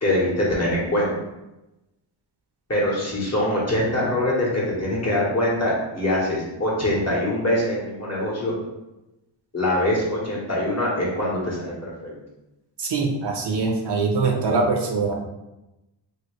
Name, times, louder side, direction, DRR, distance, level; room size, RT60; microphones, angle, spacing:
voice 1, 0.0-1.1 2.7-8.5 9.5-12.1, left 1 dB, 35° left, -5 dB, 1.3 m, -23 dB
voice 2, 12.8-15.1, right 4 dB, 60° right, 1 dB, 0.7 m, -23 dB
3.0 x 2.8 x 3.1 m, 0.97 s
wide cardioid pair, 70°, 46 cm